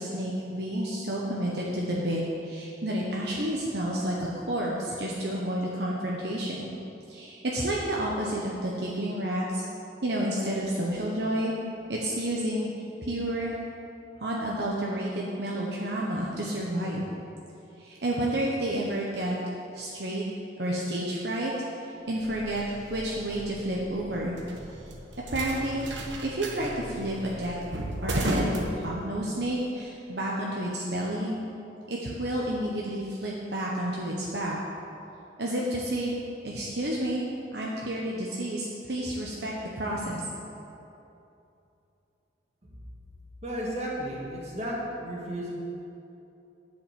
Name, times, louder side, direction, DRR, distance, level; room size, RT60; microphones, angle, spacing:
voice 1, 0.0-6.7 7.1-9.7 10.0-11.5 11.9-12.7 13.0-13.5 14.2-17.0 17.8-19.4 19.7-20.2 20.6-21.5 21.8-24.4 25.3-25.9 26.2-27.7 28.0-31.4 31.9-34.5 35.4-36.2 36.4-37.2 37.5-40.2, right 1 dB, 65° right, -4 dB, 1.1 m, -30 dB
sound 1, 22.1-29.4, right 1 dB, 85° right, 1.2 m, -35 dB
voice 2, 43.4-44.7 45.0-45.5, equal, 35° right, -4 dB, 2.1 m, -33 dB
10.0 x 5.7 x 7.5 m, 2.8 s
head